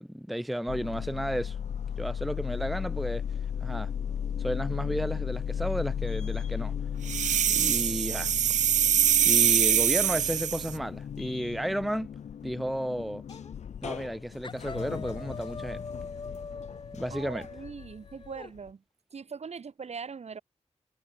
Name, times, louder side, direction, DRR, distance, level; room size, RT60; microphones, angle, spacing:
voice 1, 0.0-1.6 2.0-3.2 3.6-3.9 4.4-6.7 7.5-8.3 9.3-12.1 12.4-13.2 13.8-15.8 16.9-17.4, equal, ahead, 0.5 m, -32 dB
sound 1, 0.7-18.7, left 8 dB, 75° left, 0.5 m, -36 dB
sound 2, 7.1-10.7, right 9 dB, 90° right, 0.4 m, -24 dB
sound 3, 13.3-13.5 13.8-14.2 14.4-18.5, left 4 dB, 40° left, 2.9 m, -43 dB
voice 2, 17.1-18.8 19.1-20.4, right 5 dB, 65° right, 2.4 m, -41 dB
wide cardioid pair, 95°, 12 cm